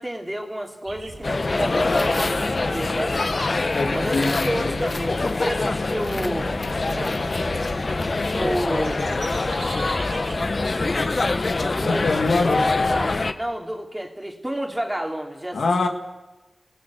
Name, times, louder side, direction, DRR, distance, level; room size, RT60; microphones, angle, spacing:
voice 1, 0.0-3.2 3.9-7.2 8.4-9.2 11.8-12.1 12.9-13.1 13.4-15.6, right 1 dB, 10° right, 2 dB, 3.2 m, -30 dB
sound 1, 0.8-10.7, right 3 dB, 70° right, 2.9 m, -41 dB
sound 2, 1.2-13.3, left 3 dB, 50° left, 1.2 m, -24 dB
voice 2, 3.7-4.8 11.8-12.7 15.5-15.9, left 3 dB, 85° left, 4 dB, 2.2 m, -24 dB
30.0 x 18.0 x 6.5 m, 1.1 s
wide cardioid pair, 60°, 0 cm